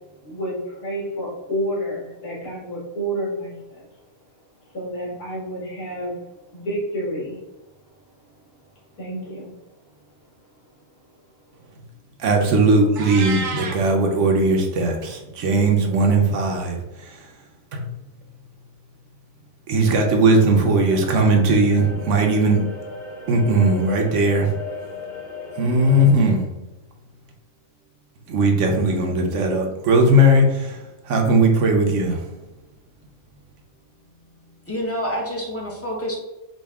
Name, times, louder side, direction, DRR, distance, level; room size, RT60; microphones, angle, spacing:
voice 1, 0.2-3.9 4.6-6.2 6.5-7.4 8.9-9.5, equal, 75° left, -5 dB, 2.2 m, -29 dB
voice 2, 12.2-16.8 17.7-17.8 19.7-22.6 23.3-24.5 25.6-26.4 28.3-30.8 31.1-32.2, right 2 dB, 60° right, 3 dB, 0.9 m, -18 dB
Meow, 13.0-13.8, right 4 dB, 90° right, 1.3 m, -29 dB
sound 1, 20.8-26.1, left 2 dB, 55° left, 1.0 m, -36 dB
voice 3, 34.7-36.2, equal, 15° left, -2 dB, 0.6 m, -27 dB
5.2 x 2.4 x 3.5 m, 1.0 s
omnidirectional pair, 1.6 m